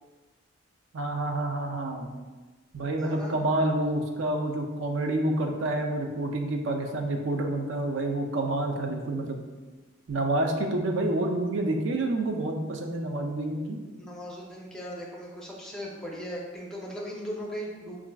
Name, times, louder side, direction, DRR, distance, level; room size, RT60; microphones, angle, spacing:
voice 1, 0.9-2.1 2.7-9.4 10.1-13.8, right 1 dB, 65° right, 3 dB, 0.5 m, -28 dB
voice 2, 3.0-3.3 14.0-18.0, equal, 5° left, -4 dB, 0.5 m, -38 dB
5.6 x 2.4 x 2.3 m, 1.3 s
head